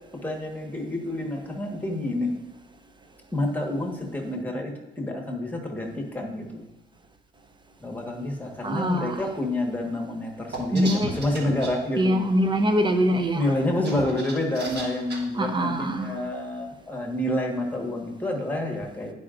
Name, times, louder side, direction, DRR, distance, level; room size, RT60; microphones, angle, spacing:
voice 1, 0.1-2.3 3.3-6.7 7.8-12.2 13.3-19.1, left 1 dB, 10° left, 0 dB, 1.4 m, -28 dB
voice 2, 8.6-9.2 10.7-11.1 11.9-13.4 15.3-16.2, equal, 25° right, 7 dB, 0.6 m, -23 dB
sound 1, 10.5-11.7 13.6-15.2, right 2 dB, 60° right, 1.5 m, -35 dB
10.5 x 4.8 x 2.5 m, 1.0 s
cardioid pair, 90°, 20 cm